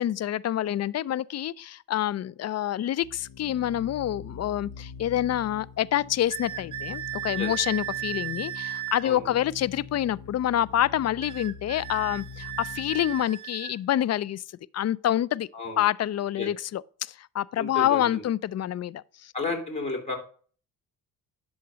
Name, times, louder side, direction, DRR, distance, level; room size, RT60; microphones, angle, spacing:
voice 1, 0.0-14.4 14.7-15.5 15.8-19.3, left 12 dB, 40° left, 0.4 m, -27 dB
sound 1, 3.0-13.2, left 6 dB, 60° left, 1.6 m, -44 dB
sound 2, 6.3-9.1 11.2-13.8, right 14 dB, 50° right, 0.9 m, -35 dB
voice 2, 17.5-18.2 19.3-20.2, left 3 dB, 15° left, 3.3 m, -32 dB
11.0 x 3.9 x 5.1 m
supercardioid pair, 65°, 40 cm